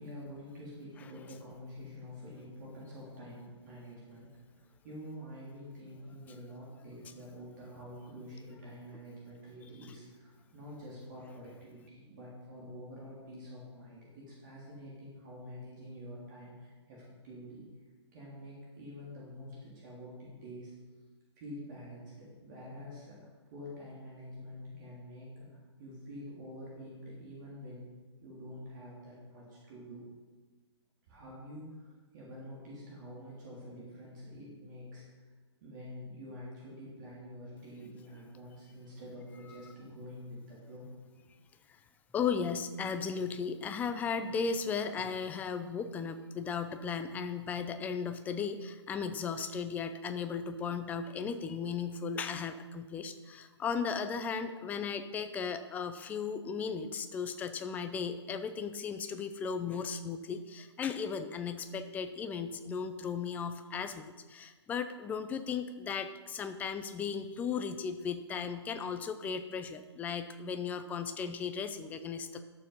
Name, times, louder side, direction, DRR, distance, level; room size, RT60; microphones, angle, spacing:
voice 1, 0.0-4.3 4.5-17.7 18.1-20.7 21.4-25.5 25.8-27.9 28.2-30.0 31.1-35.1 35.6-40.9, equal, 40° right, -5 dB, 3.3 m, -47 dB
voice 2, 42.1-72.4, left 6 dB, 10° left, 9 dB, 0.5 m, -36 dB
11.5 x 6.9 x 5.6 m, 1.3 s
hypercardioid pair, 140°, 15 cm